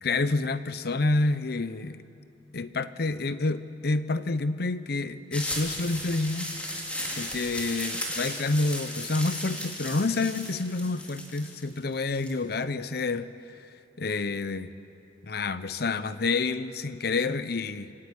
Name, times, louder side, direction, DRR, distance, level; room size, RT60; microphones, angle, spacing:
voice 1, 0.0-2.0 2.5-6.5 7.1-13.3 14.0-14.7 15.2-17.9, left 3 dB, 60° left, 13 dB, 0.8 m, -28 dB
sound 1, 5.3-12.3, left 1 dB, 5° left, 2.9 m, -35 dB
26.5 x 12.5 x 8.9 m, 2.7 s
head